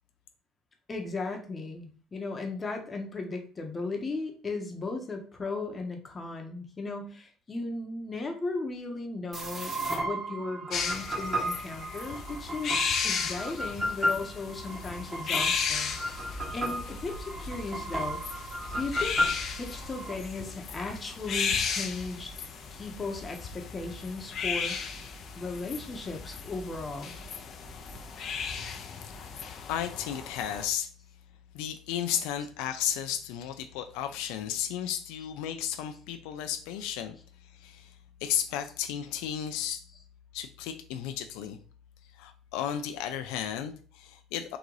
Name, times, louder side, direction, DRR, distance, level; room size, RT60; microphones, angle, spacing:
voice 1, 0.9-16.0 16.5-18.2 18.7-19.2 19.6-22.3 22.7-24.8 25.3-27.2, left 3 dB, 25° left, 3 dB, 1.1 m, -36 dB
sound 1, 9.3-20.1, equal, 20° right, 1.5 m, -34 dB
sound 2, 10.7-30.6, left 6 dB, 50° left, 0.7 m, -35 dB
voice 2, 29.1-30.9 31.5-37.2 37.5-37.9 38.2-39.8 40.3-41.6 42.2-44.6, left 10 dB, 85° left, 8 dB, 0.5 m, -34 dB
3.8 x 2.6 x 4.7 m, 0.41 s
cardioid pair, 105°, 0 cm